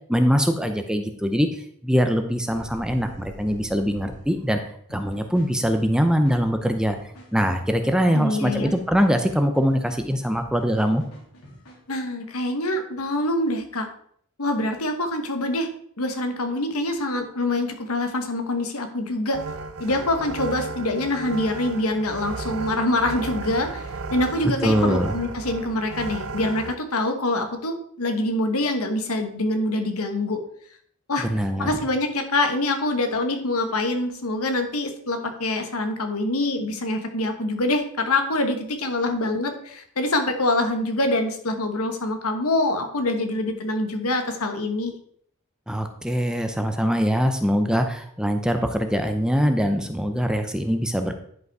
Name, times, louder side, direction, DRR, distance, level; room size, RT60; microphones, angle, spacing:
voice 1, 0.1-4.6 4.9-7.0 7.3-11.0 24.6-25.2 31.2-31.8 45.7-51.1, equal, 5° right, 6 dB, 0.6 m, -22 dB
sound 1, 2.4-4.6, right 1 dB, 85° right, 1.3 m, -44 dB
sound 2, 4.9-12.1, equal, 90° left, 2.8 m, -46 dB
voice 2, 8.1-8.7 11.9-13.9 14.4-15.7 16.0-19.4 19.8-30.4 31.1-31.3 31.6-44.9, left 2 dB, 75° left, 6 dB, 1.3 m, -25 dB
sound 3, 19.3-26.7, right 3 dB, 65° right, 0.6 m, -34 dB
10.5 x 5.3 x 4.7 m, 0.64 s
head